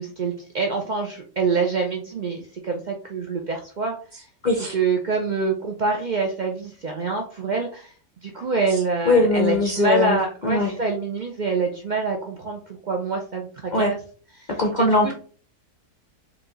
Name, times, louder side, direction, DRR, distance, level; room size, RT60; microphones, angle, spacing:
voice 1, 0.0-4.3 4.7-7.9 8.2-13.5 13.8-14.0 14.4-14.5, right 4 dB, 80° right, 2 dB, 0.4 m, -26 dB
voice 2, 4.4-4.7 9.0-10.7 13.7-13.9 14.6-15.1, left 2 dB, 55° left, 1 dB, 0.5 m, -20 dB
4.7 x 2.4 x 3.8 m, 0.42 s
omnidirectional pair, 1.6 m